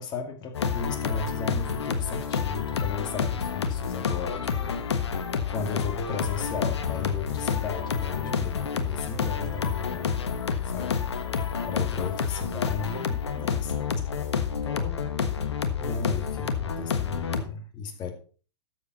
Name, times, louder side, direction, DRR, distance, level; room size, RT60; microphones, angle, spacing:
voice 1, 0.0-4.7 5.5-10.1 10.6-11.1 11.4-14.1 14.6-15.1 15.8-18.1, left 5 dB, 30° left, 2.3 m, -35 dB
sound 1, 0.5-17.4, left 6 dB, 75° left, 1.3 m, -29 dB
13.0 x 7.4 x 4.1 m
hypercardioid pair, 105°, 15 cm